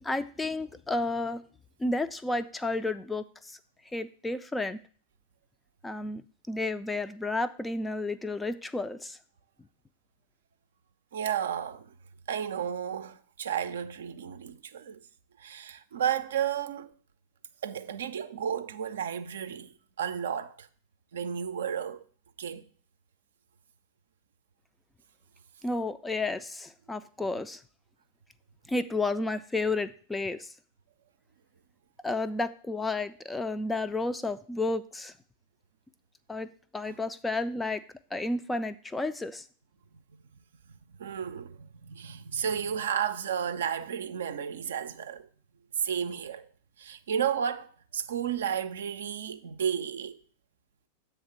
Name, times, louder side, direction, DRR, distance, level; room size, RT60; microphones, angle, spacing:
voice 1, 0.0-1.4 1.8-3.6 3.9-4.8 5.8-9.2 25.6-27.6 28.7-30.5 32.0-35.1 36.3-37.8 38.1-39.4, left 2 dB, 10° left, 0.3 m, -32 dB
voice 2, 11.1-11.9 12.3-15.0 15.4-16.9 17.6-20.7 21.1-22.0 22.4-22.7 40.9-45.3 45.8-46.4 46.8-50.2, right 8 dB, 65° right, 0.4 m, -32 dB
7.7 x 3.4 x 5.8 m
figure-of-eight pair, 90°, 0 cm